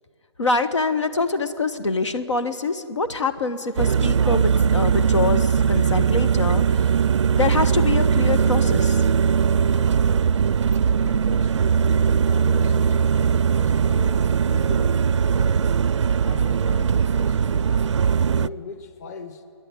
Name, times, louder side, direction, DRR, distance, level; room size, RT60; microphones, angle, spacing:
voice 1, 0.4-6.8 7.3-9.0, left 3 dB, 90° left, 10 dB, 1.3 m, -25 dB
sound 1, 3.8-18.5, right 7 dB, 90° right, 0.4 m, -20 dB
voice 2, 9.5-10.2 10.9-13.0 13.3-15.7 16.2-17.9 18.3-19.4, left 5 dB, 35° left, 9 dB, 1.4 m, -39 dB
28.0 x 11.0 x 9.6 m, 2.4 s
hypercardioid pair, 160°, 15 cm